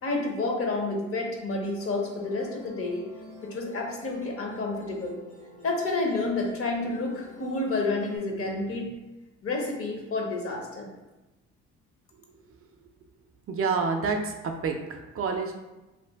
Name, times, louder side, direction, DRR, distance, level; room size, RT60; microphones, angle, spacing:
voice 1, 0.0-3.0 3.4-5.2 5.6-8.9 9.4-10.9, left 2 dB, 50° left, 1 dB, 0.7 m, -29 dB
Musical instrument, 1.8-8.2, left 1 dB, 85° left, 1.4 m, -48 dB
voice 2, 13.5-14.3 14.6-15.6, right 4 dB, 50° right, 3 dB, 0.4 m, -28 dB
2.5 x 2.4 x 3.4 m, 1.1 s
cardioid pair, 90°, 30 cm